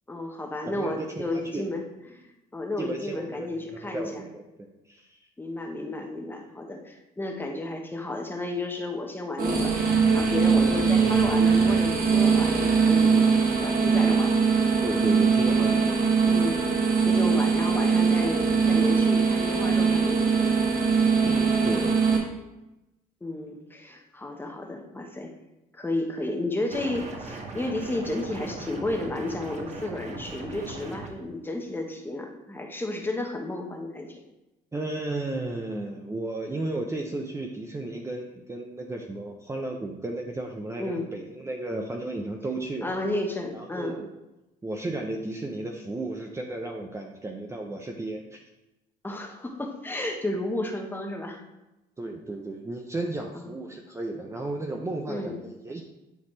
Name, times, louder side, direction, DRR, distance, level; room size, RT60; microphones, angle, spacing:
voice 1, 0.1-1.8 2.1-4.2 5.4-14.4 16.2-16.6 17.0-20.5 23.2-25.3 25.7-34.2 40.8-41.1 42.8-44.0 49.0-51.4 53.3-53.6 55.1-55.4, left 2 dB, 10° left, 2 dB, 1.1 m, -32 dB
voice 2, 0.7-1.7 2.8-4.4 4.9-5.2 14.8-16.0 21.2-22.2 34.7-42.9 43.5-44.1 44.6-48.4 52.0-55.8, right 2 dB, 15° right, 2 dB, 0.7 m, -34 dB
sound 1, 9.4-22.2, right 5 dB, 60° right, 1.5 m, -21 dB
sound 2, 26.7-31.1, right 3 dB, 40° right, 1.2 m, -39 dB
9.9 x 4.2 x 3.2 m, 0.97 s
cardioid pair, 110°, 17 cm